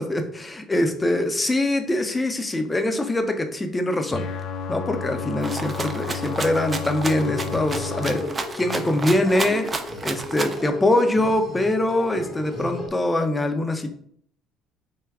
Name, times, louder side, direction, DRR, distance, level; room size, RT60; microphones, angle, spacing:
voice 1, 0.0-4.3 4.7-8.2 8.5-9.7 10.0-13.9, left 1 dB, 15° left, 6 dB, 0.6 m, -23 dB
sound 1, 4.1-8.2, left 6 dB, 60° left, 0.3 m, -32 dB
Rattle (instrument), 5.4-10.7, right 3 dB, 30° right, 0.5 m, -32 dB
sound 2, 7.1-12.9, left 2 dB, 40° left, 0.9 m, -35 dB
3.4 x 2.2 x 3.4 m, 0.62 s
supercardioid pair, 75°, 0 cm